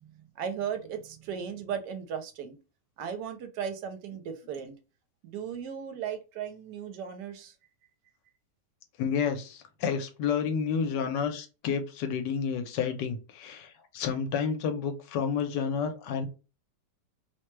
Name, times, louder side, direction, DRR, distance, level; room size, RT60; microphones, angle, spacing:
voice 1, 0.0-2.6 3.0-4.7 5.2-7.5, right 7 dB, 80° right, 1.2 m, -36 dB
voice 2, 9.0-16.3, left 6 dB, 85° left, 1.3 m, -30 dB
3.0 x 2.2 x 3.0 m
omnidirectional pair, 1.8 m